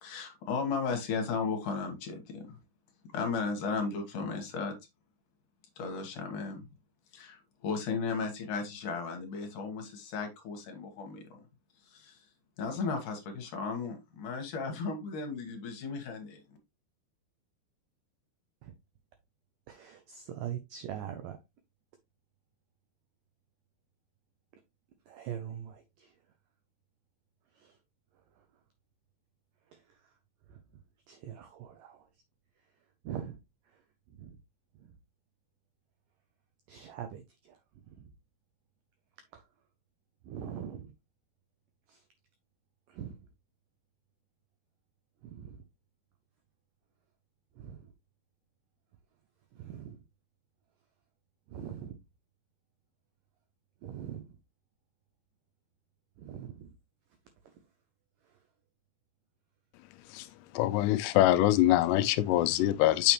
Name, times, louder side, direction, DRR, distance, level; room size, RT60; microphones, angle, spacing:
voice 1, 0.0-2.6 3.1-4.7 5.8-6.6 7.1-11.4 11.9-12.2 12.6-16.4, left 4 dB, 60° left, 2.5 m, -35 dB
voice 2, 19.7-21.4 25.1-26.2 27.5-27.8 28.3-28.5 29.7-30.1 30.5-30.6 31.1-32.1 33.0-33.4 33.7-33.8 34.1-34.4 34.8-35.0 36.7-37.6 37.9-38.1 39.3-39.4 40.2-40.9 41.9-42.0 42.9-43.3 45.2-45.6 47.6-47.9 49.5-50.0 51.5-52.0 53.8-54.3 56.2-56.7 57.4-57.6 58.2-58.4, right 9 dB, 80° right, 1.9 m, -43 dB
voice 3, 60.5-63.1, left 14 dB, 85° left, 2.7 m, -24 dB
7.0 x 6.3 x 3.1 m
omnidirectional pair, 4.9 m